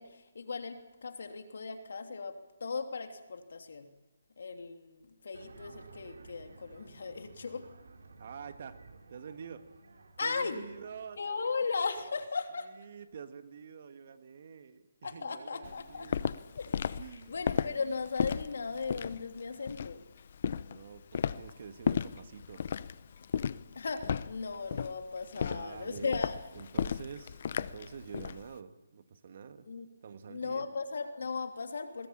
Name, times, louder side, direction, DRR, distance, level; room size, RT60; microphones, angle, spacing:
voice 1, 0.0-3.9 4.4-7.7 10.2-10.7 11.2-12.7 15.0-20.0 23.7-26.4 29.7-29.9 30.3-32.1, left 4 dB, 65° left, 6 dB, 3.0 m, -37 dB
sound 1, 5.3-11.6, right 3 dB, 80° right, 3.4 m, -55 dB
voice 2, 8.2-8.8 9.1-9.7 10.2-11.5 12.1-12.2 12.6-16.3 17.0-17.3 20.6-22.7 25.4-26.2 26.6-29.7 30.0-30.7, right 6 dB, 45° right, 10 dB, 1.6 m, -47 dB
Walk footsteps, 15.6-28.4, left 7 dB, 45° left, 0.7 m, -34 dB
21.0 x 19.0 x 8.7 m, 1.1 s
hypercardioid pair, 170°, 0 cm